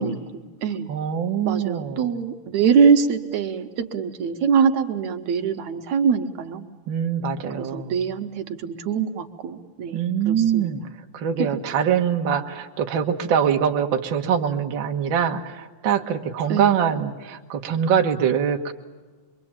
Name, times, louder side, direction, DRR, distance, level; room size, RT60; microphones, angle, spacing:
voice 1, 0.0-0.9 1.5-6.6 7.6-10.7 11.4-11.5 16.5-16.9, right 6 dB, 70° right, 6 dB, 2.4 m, -23 dB
voice 2, 0.9-2.1 6.9-8.0 9.9-10.8 11.1-18.7, right 8 dB, 50° right, 3 dB, 1.7 m, -23 dB
25.5 x 23.5 x 8.8 m, 1.3 s
omnidirectional pair, 3.6 m